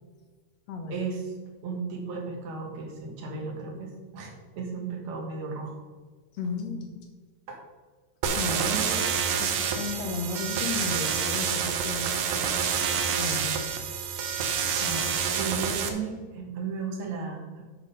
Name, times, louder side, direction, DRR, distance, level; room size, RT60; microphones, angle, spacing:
voice 1, 0.9-1.3 1.6-5.8 7.5-7.6 8.7-9.1 14.8-17.6, right 4 dB, 70° right, 1 dB, 2.7 m, -35 dB
voice 2, 6.4-6.9 8.4-9.0 9.4-12.1 13.0-13.6, left 4 dB, 70° left, 4 dB, 2.0 m, -34 dB
sound 1, 8.2-15.9, right 7 dB, 85° right, 2.3 m, -28 dB
8.3 x 5.9 x 5.3 m, 1.4 s
omnidirectional pair, 3.3 m